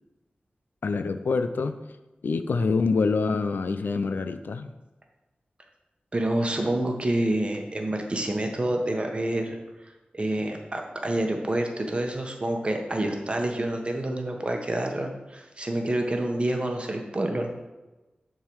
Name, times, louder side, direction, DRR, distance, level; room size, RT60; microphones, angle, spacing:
voice 1, 0.8-1.8 2.2-4.7, left 4 dB, 85° left, 10 dB, 0.5 m, -26 dB
voice 2, 6.1-9.6 10.1-17.5, right 1 dB, 35° right, 3 dB, 1.1 m, -28 dB
10.0 x 3.8 x 4.6 m, 1.1 s
wide cardioid pair, 85°, 3 cm